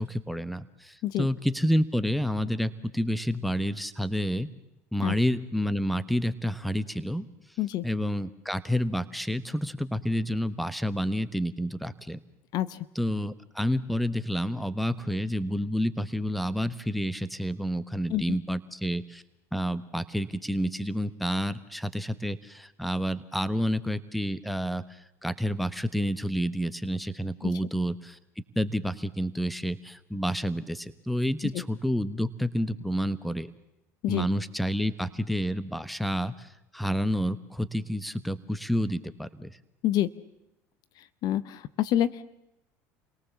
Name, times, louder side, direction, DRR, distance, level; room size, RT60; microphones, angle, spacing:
voice 1, 0.0-4.5 4.9-7.2 7.8-12.2 12.9-19.2 19.5-28.2 28.5-33.5 34.1-39.6, equal, ahead, 14 dB, 1.2 m, -29 dB
voice 2, 41.2-42.2, left 12 dB, 60° left, 16 dB, 0.9 m, -27 dB
28.5 x 18.5 x 7.2 m, 0.86 s
supercardioid pair, 85°, 8 cm